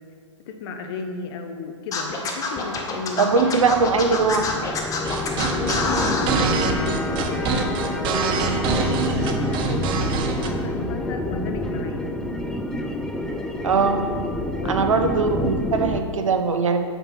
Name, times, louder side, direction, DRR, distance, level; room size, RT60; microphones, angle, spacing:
voice 1, 0.5-3.5 5.5-9.9 10.5-12.1 14.6-14.9, left 4 dB, 55° left, 5 dB, 0.8 m, -33 dB
Scratching (performance technique), 1.9-6.3, left 4 dB, 20° left, 0.8 m, -26 dB
sound 1, 2.8-16.0, left 1 dB, 5° left, 0.3 m, -28 dB
voice 2, 3.2-4.5 13.6-14.1 14.7-16.8, right 4 dB, 85° right, 7 dB, 0.7 m, -20 dB
sound 2, 5.0-10.5, right 5 dB, 30° right, 0.6 m, -25 dB
5.3 x 4.4 x 6.1 m, 2.1 s
hypercardioid pair, 120°, 16 cm